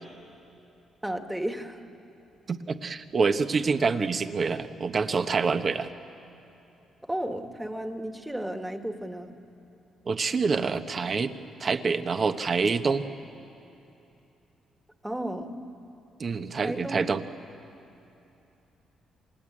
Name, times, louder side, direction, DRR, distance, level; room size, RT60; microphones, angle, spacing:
voice 1, 1.0-1.8 7.0-9.3 15.0-15.6 16.6-17.0, right 1 dB, 5° right, 6 dB, 1.8 m, -33 dB
voice 2, 2.5-5.9 10.1-11.3 11.6-13.1 16.2-17.2, right 4 dB, 40° right, 8 dB, 1.2 m, -26 dB
28.0 x 19.5 x 8.8 m, 2.9 s
cardioid pair, 90°, 0 cm